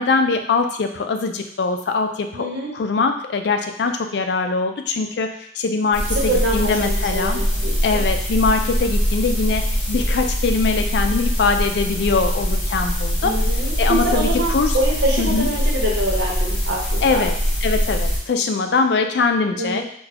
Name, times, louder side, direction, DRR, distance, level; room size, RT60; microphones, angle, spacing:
voice 1, 0.0-7.4 7.8-13.3 13.8-14.8 15.2-15.5 17.0-17.3 17.6-19.8, left 4 dB, 65° left, 6 dB, 0.4 m, -22 dB
voice 2, 2.3-2.7 6.1-8.0 13.2-17.3 19.6-19.8, right 1 dB, 80° right, -3 dB, 1.0 m, -25 dB
sound 1, 5.9-18.2, equal, 40° left, 1.2 m, -22 dB
3.9 x 2.3 x 2.8 m, 0.69 s
head